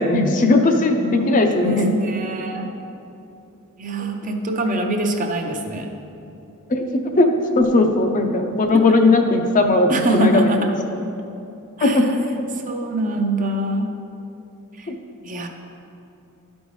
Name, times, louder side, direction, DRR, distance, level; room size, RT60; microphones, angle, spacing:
voice 1, 0.0-1.9 6.7-7.3 7.6-10.5 11.8-12.2 14.9-15.0, left 2 dB, 35° left, 4 dB, 0.5 m, -17 dB
voice 2, 1.6-2.7 3.8-5.9 8.7-9.0 9.9-10.7 11.8-13.9 14.8-14.9 15.2-15.5, right 1 dB, 35° right, 3 dB, 0.6 m, -24 dB
11.0 x 5.3 x 3.2 m, 2.8 s
head